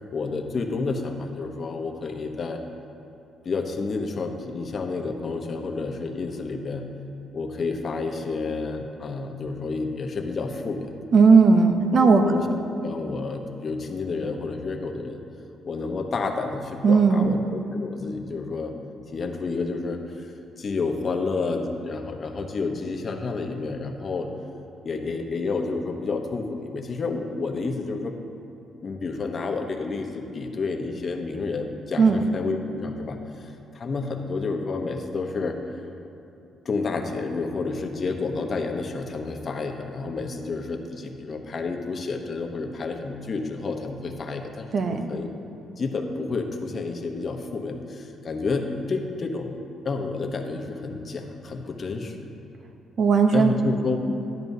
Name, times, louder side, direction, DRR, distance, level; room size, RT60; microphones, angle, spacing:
voice 1, 0.1-2.6 3.4-6.9 7.3-11.0 12.0-15.2 15.6-18.7 19.1-24.3 24.8-28.1 28.8-35.6 36.6-45.3 45.8-52.3 53.3-54.0, left 4 dB, 45° left, 3 dB, 0.9 m, -30 dB
voice 2, 11.1-12.2 16.8-17.3 32.0-32.2 44.7-45.0 53.0-53.5, right 5 dB, 55° right, 5 dB, 0.8 m, -17 dB
11.0 x 10.5 x 2.7 m, 2.9 s
cardioid pair, 90°, 0 cm